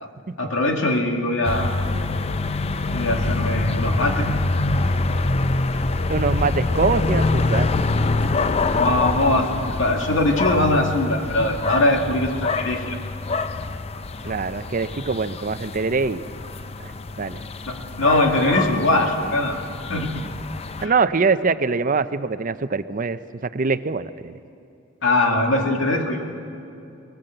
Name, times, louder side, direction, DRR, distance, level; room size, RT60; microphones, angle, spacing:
voice 1, 0.4-1.7 2.9-4.3 8.8-13.0 17.7-19.6 19.9-20.1 20.8-20.9 25.0-26.2, left 1 dB, 80° left, 2 dB, 2.3 m, -21 dB
sound 1, 1.4-20.9, left 3 dB, 30° left, 0.6 m, -25 dB
voice 2, 6.1-7.7 14.2-16.2 16.8-16.9 17.2-17.4 20.8-24.3, right 4 dB, 45° right, 12 dB, 0.6 m, -23 dB
20.5 x 19.5 x 7.9 m, 2.6 s
head